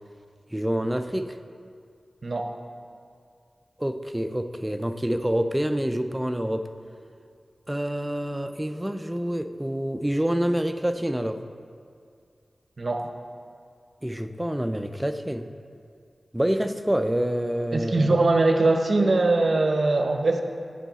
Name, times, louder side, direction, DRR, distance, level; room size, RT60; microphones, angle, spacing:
voice 1, 0.5-1.4 3.8-6.7 7.7-11.4 14.0-15.5 16.3-18.2, equal, 10° right, 9 dB, 0.4 m, -27 dB
voice 2, 2.2-2.5 12.8-13.1 17.7-20.4, right 2 dB, 60° right, 5 dB, 0.6 m, -21 dB
9.1 x 6.3 x 4.0 m, 2.3 s
wide cardioid pair, 65°, 0 cm